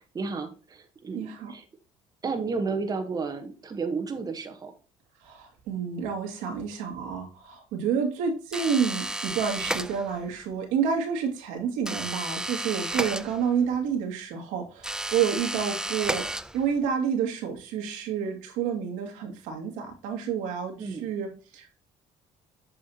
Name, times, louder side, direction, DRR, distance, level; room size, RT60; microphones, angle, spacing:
voice 1, 0.0-1.6 2.2-4.7 20.8-21.1, right 4 dB, 30° right, 4 dB, 1.2 m, -32 dB
voice 2, 1.1-1.5 5.2-16.3 16.5-21.8, right 7 dB, 90° right, 1 dB, 2.1 m, -29 dB
sound 1, 8.5-10.3 11.8-13.8 14.8-16.9, right 1 dB, 5° right, 0.3 m, -32 dB
7.7 x 5.6 x 2.8 m, 0.36 s
cardioid pair, 105°, 13 cm